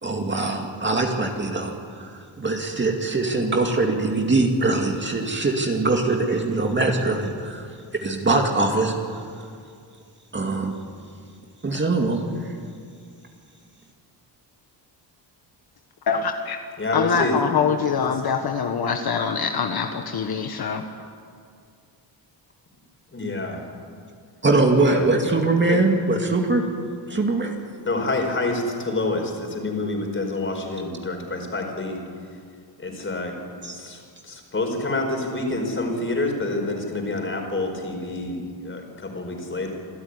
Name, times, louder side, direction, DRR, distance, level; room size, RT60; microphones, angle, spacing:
voice 1, 0.0-7.7 8.0-8.9 10.3-10.7 11.6-12.2 24.4-26.6 27.1-27.6 33.6-33.8, right 2 dB, 25° right, 2 dB, 2.3 m, -22 dB
voice 2, 16.1-16.6 16.9-20.8, left 6 dB, 55° left, 5 dB, 1.4 m, -24 dB
voice 3, 16.8-17.4 17.9-18.2 23.1-23.7 24.9-25.2 25.6-25.8 27.9-32.0 32.8-33.3 33.7-39.7, left 2 dB, 25° left, 2 dB, 4.8 m, -27 dB
27.0 x 13.5 x 9.8 m, 2.3 s
cardioid pair, 135°, 45 cm